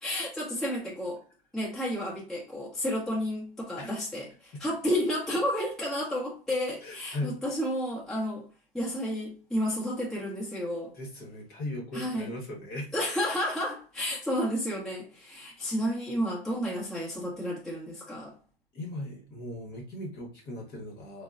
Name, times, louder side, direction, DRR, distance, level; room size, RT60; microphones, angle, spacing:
voice 1, 0.0-1.2 1.5-8.4 8.7-10.9 11.9-12.3 12.9-18.3, equal, ahead, 0.9 m, -31 dB
voice 2, 6.8-7.3 10.9-12.9 18.7-21.2, left 1 dB, 30° left, 1.1 m, -38 dB
3.6 x 2.1 x 2.4 m
hypercardioid pair, 125°, 31 cm